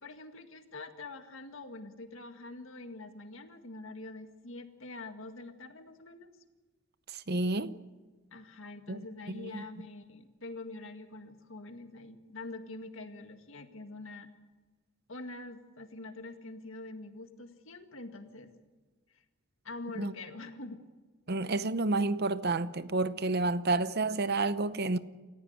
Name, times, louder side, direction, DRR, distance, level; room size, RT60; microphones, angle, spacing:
voice 1, 0.0-6.3 8.3-14.3 15.1-18.5 19.1-19.2 19.6-20.8, left 2 dB, 60° left, 1.9 m, -45 dB
voice 2, 7.1-7.8 8.9-9.0 9.4-9.6 19.9-20.1 21.3-25.0, right 2 dB, 45° right, 0.8 m, -30 dB
28.5 x 15.5 x 8.1 m
head